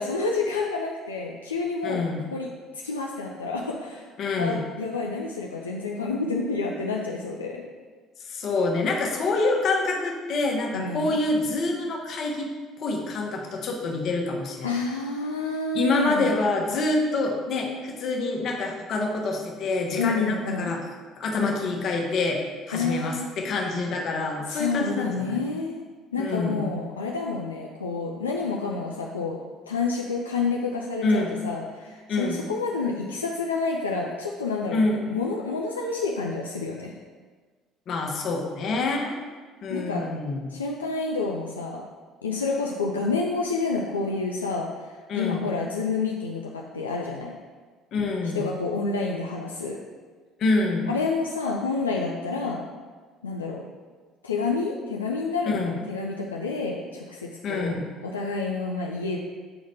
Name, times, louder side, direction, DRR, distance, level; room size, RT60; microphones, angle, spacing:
voice 1, 0.0-4.1 4.4-7.7 10.7-11.2 14.6-16.4 20.0-20.8 22.7-23.3 24.5-25.8 26.1-37.0 39.7-40.1 40.5-41.8 42.2-47.4 48.2-49.8 50.9-52.6 53.2-53.7 54.2-57.8 58.0-59.2, left 4 dB, 90° left, -1 dB, 0.4 m, -29 dB
voice 2, 1.8-2.2 4.2-4.6 8.2-12.5 12.8-14.7 15.7-20.8 21.2-22.4 22.7-25.4 26.2-26.7 31.0-31.3 32.1-32.4 34.7-35.1 37.9-39.2 39.6-40.6 45.1-45.4 47.9-48.5 50.4-50.9 55.5-55.7 57.4-57.8, left 3 dB, 50° left, 1 dB, 1.1 m, -26 dB
7.8 x 3.9 x 3.4 m, 1.4 s
hypercardioid pair, 60°, 0 cm